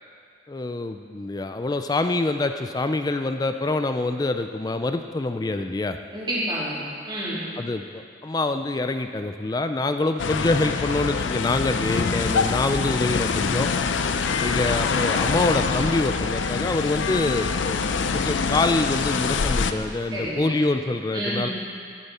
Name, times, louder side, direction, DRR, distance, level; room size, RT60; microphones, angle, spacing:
voice 1, 0.5-6.0 7.6-13.7 14.4-17.8 18.1-21.5, left 2 dB, 20° left, 7 dB, 0.3 m, -25 dB
voice 2, 6.1-7.4 20.1-20.6 21.1-21.5, equal, 25° right, -9 dB, 3.1 m, -29 dB
sound 1, 10.2-19.7, left 5 dB, 85° left, 0.5 m, -25 dB
14.5 x 10.5 x 4.2 m, 2.2 s
head